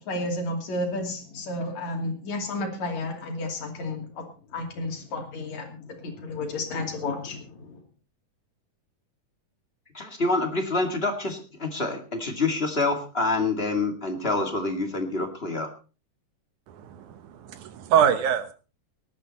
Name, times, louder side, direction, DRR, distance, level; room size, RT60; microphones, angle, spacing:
voice 1, 0.0-7.8, left 2 dB, 60° left, 3 dB, 3.9 m, -32 dB
voice 2, 9.9-15.7, left 3 dB, 20° left, 4 dB, 1.9 m, -27 dB
voice 3, 16.7-18.5, right 8 dB, 70° right, 11 dB, 2.4 m, -24 dB
18.5 x 11.5 x 4.2 m, 0.35 s
omnidirectional pair, 3.7 m